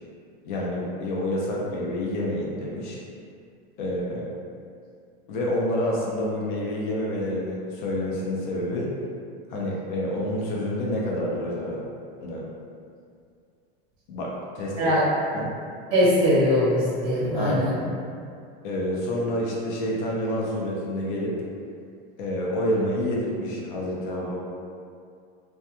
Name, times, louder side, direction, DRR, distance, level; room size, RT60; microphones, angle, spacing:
voice 1, 0.4-3.0 3.8-4.3 5.3-8.9 9.5-11.8 12.2-12.4 14.1-14.9 15.3-15.5 17.4-17.8 18.6-21.4 22.2-24.4, left 1 dB, 50° left, -4 dB, 0.5 m, -28 dB
voice 2, 15.9-17.8, equal, 15° right, -10 dB, 0.7 m, -21 dB
2.3 x 2.2 x 2.8 m, 2.3 s
supercardioid pair, 175°, 30 cm